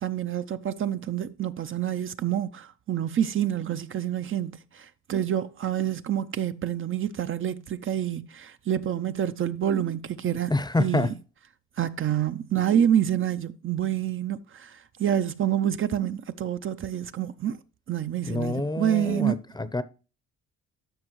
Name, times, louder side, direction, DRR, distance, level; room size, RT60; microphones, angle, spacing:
voice 1, 0.0-10.5 10.8-11.1 11.8-17.6 17.9-19.4, right 10 dB, 45° right, 0.5 m, -27 dB
voice 2, 10.5-11.1 18.3-19.8, left 2 dB, 15° left, 0.6 m, -27 dB
12.5 x 5.3 x 3.0 m
cardioid pair, 90°, 30 cm